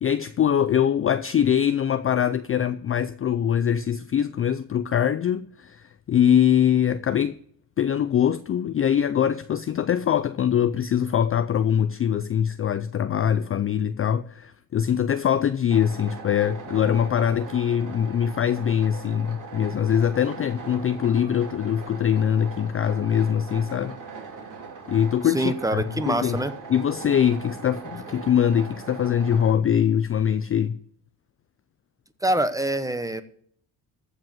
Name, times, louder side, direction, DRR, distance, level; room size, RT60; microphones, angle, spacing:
voice 1, 0.0-7.4 7.8-24.0 24.9-26.4 26.7-30.8, left 9 dB, 30° left, 0.4 m, -23 dB
sound 1, 15.7-29.5, right 5 dB, 45° right, 3.0 m, -40 dB
voice 2, 25.3-26.5 32.2-33.2, right 1 dB, 5° right, 0.9 m, -25 dB
14.5 x 5.1 x 7.8 m
cardioid pair, 105°, 46 cm